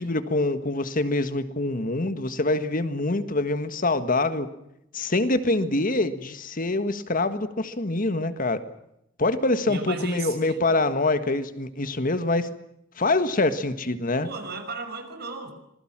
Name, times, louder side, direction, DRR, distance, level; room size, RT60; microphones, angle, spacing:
voice 1, 0.0-4.5 4.9-8.6 9.2-12.5 13.0-14.3, left 2 dB, 45° left, 11 dB, 1.6 m, -25 dB
voice 2, 9.7-10.7 14.2-15.5, right 3 dB, 55° right, 7 dB, 6.0 m, -35 dB
26.5 x 21.0 x 7.5 m, 0.80 s
head